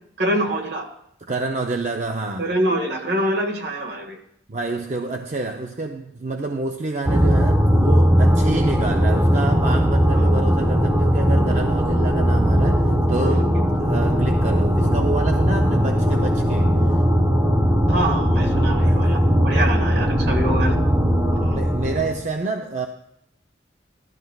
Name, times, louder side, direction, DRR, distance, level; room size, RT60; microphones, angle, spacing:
voice 1, 0.2-0.9 2.4-4.2 10.1-10.3 13.2-13.5 17.9-19.2 19.4-20.8 21.3-21.6, right 1 dB, 65° right, 2 dB, 1.7 m, -25 dB
voice 2, 1.3-2.5 4.5-13.5 13.8-17.0 18.8-19.3 21.5-22.9, right 3 dB, 40° right, 4 dB, 0.5 m, -28 dB
sound 1, 7.1-22.2, equal, 15° right, 0.9 m, -18 dB
16.0 x 12.5 x 2.3 m, 0.71 s
head